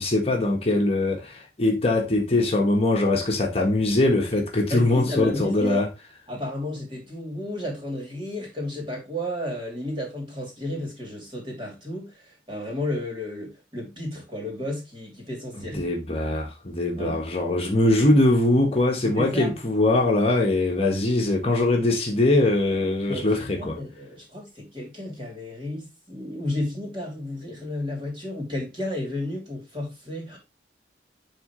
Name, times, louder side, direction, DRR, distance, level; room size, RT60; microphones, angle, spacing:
voice 1, 0.0-5.9 15.6-23.8, left 2 dB, 35° left, 1.3 m, -22 dB
voice 2, 4.7-5.8 6.3-15.8 17.0-17.2 19.0-19.6 23.1-30.4, left 1 dB, 25° right, 3.0 m, -32 dB
10.5 x 3.7 x 3.1 m
head